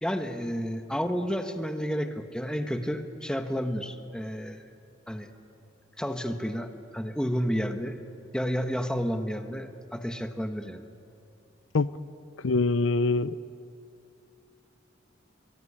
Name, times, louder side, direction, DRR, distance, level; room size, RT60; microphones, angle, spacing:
voice 1, 0.0-4.6 5.1-5.3 6.0-8.0 8.3-10.8, equal, 5° left, 7 dB, 1.3 m, -31 dB
voice 2, 12.4-13.3, left 3 dB, 90° left, 16 dB, 0.6 m, -24 dB
23.0 x 23.0 x 10.0 m, 2.6 s
head